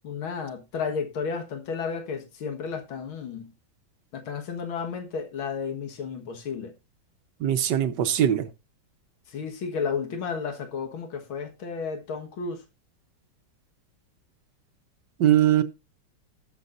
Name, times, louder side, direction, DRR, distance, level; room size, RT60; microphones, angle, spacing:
voice 1, 0.0-3.5 4.1-6.7 9.3-12.6, left 5 dB, 85° left, 2.3 m, -32 dB
voice 2, 7.4-8.5 15.2-15.6, right 11 dB, 65° right, 1.4 m, -21 dB
18.5 x 6.9 x 2.5 m
omnidirectional pair, 2.2 m